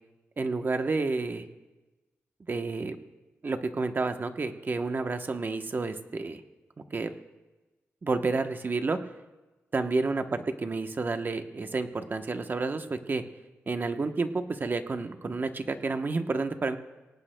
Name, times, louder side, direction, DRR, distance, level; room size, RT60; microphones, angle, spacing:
voice 1, 0.4-1.4 2.5-3.0 3.4-6.4 6.9-7.2 8.0-9.0 9.7-13.2 13.7-16.8, right 3 dB, 40° right, 7 dB, 1.0 m, -30 dB
24.5 x 18.0 x 2.3 m, 1.2 s
wide cardioid pair, 95°, 5 cm